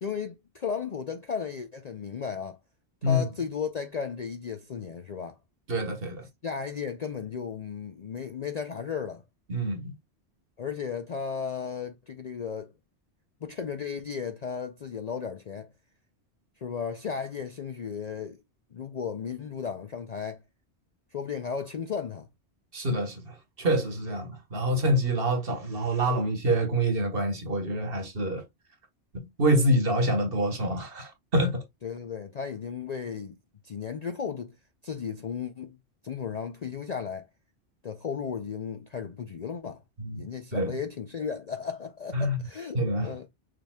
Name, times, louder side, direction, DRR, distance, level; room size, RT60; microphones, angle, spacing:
voice 1, 0.0-2.6 3.0-5.4 6.4-9.2 10.6-12.7 13.4-15.7 16.6-18.4 18.7-20.4 21.1-22.3 31.8-33.4 33.6-34.6 34.8-35.8 36.0-37.2 37.8-39.8 40.2-43.3, left 6 dB, 50° left, 0.5 m, -35 dB
voice 2, 5.7-6.2 9.5-9.9 22.7-28.4 29.1-31.6 40.0-40.2 40.5-40.8 42.1-42.4 42.7-43.1, right 1 dB, 55° right, 1.4 m, -26 dB
6.6 x 3.5 x 2.2 m
omnidirectional pair, 1.2 m